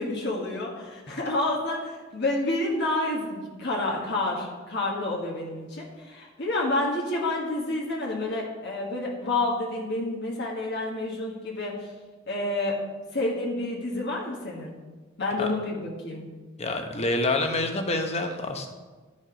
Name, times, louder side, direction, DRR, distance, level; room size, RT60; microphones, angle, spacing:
voice 1, 0.0-11.7 12.3-12.8 13.1-14.7 15.2-16.2, left 2 dB, 60° left, -3 dB, 1.5 m, -29 dB
voice 2, 16.6-18.7, left 2 dB, 30° left, 5 dB, 0.9 m, -27 dB
11.0 x 5.3 x 5.0 m, 1.3 s
head